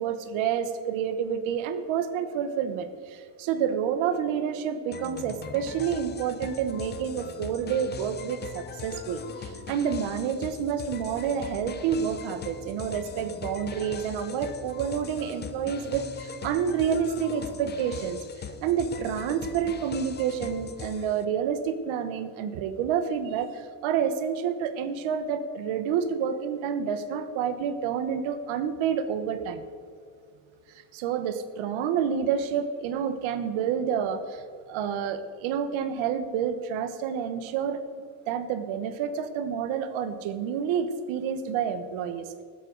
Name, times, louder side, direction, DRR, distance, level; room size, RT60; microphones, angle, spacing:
voice 1, 0.0-29.6 30.7-37.8 38.3-42.4, right 7 dB, 90° right, 10 dB, 1.2 m, -29 dB
sound 1, 4.9-21.2, left 6 dB, 25° left, 0.5 m, -40 dB
15.5 x 12.5 x 4.0 m, 2.2 s
cardioid pair, 180°, 46 cm